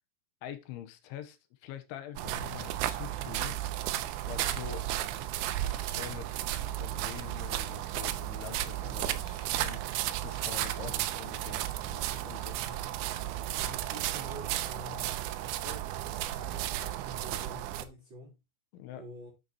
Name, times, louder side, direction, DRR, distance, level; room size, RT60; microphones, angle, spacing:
voice 1, 0.4-3.6 4.3-4.9 5.6-6.3 6.7-9.8 10.2-12.8 18.7-19.1, left 11 dB, 75° left, 3.3 m, -45 dB
sound 1, 2.2-17.8, right 13 dB, 80° right, 2.8 m, -34 dB
voice 2, 13.5-15.2 15.6-18.3 18.9-19.3, left 1 dB, 25° right, 4.2 m, -48 dB
10.5 x 8.3 x 3.1 m
omnidirectional pair, 5.9 m